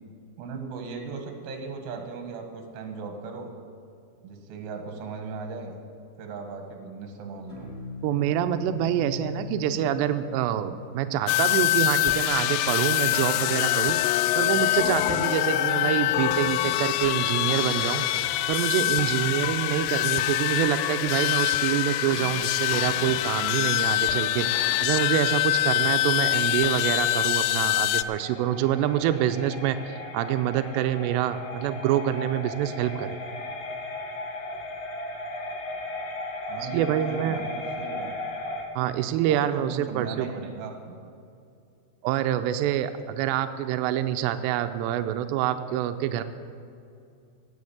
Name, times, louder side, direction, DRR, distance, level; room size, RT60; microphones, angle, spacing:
voice 1, 0.4-3.5 4.2-5.7 6.2-7.7 36.5-38.3 39.2-41.0, right 4 dB, 65° right, 4 dB, 3.5 m, -37 dB
sound 1, 7.5-18.0, left 4 dB, 20° left, 0.6 m, -42 dB
voice 2, 8.0-14.0 14.4-18.1 18.5-33.2 36.6-37.4 38.8-40.3 42.0-46.2, right 11 dB, 90° right, 8 dB, 2.5 m, -26 dB
sound 2, 11.3-28.0, left 14 dB, 85° left, 2.5 m, -24 dB
sound 3, 24.0-38.6, left 1 dB, 55° left, 1.7 m, -37 dB
17.0 x 7.5 x 8.6 m, 2.5 s
omnidirectional pair, 5.5 m